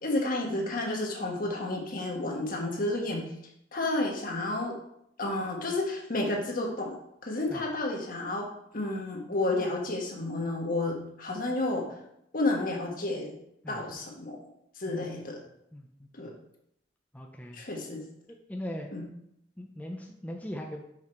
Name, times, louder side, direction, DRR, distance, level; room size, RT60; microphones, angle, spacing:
voice 1, 0.0-3.2 3.7-4.7 5.2-7.0 7.2-8.5 8.7-11.8 12.3-13.3 13.7-14.4 14.8-15.4 16.1-16.3 17.5-18.0 18.9-19.1, left 2 dB, 50° left, 0 dB, 1.4 m, -31 dB
voice 2, 15.7-16.1 17.1-17.6 18.5-18.9 19.6-20.8, equal, 10° left, 1 dB, 0.6 m, -39 dB
5.9 x 4.8 x 4.5 m, 0.75 s
head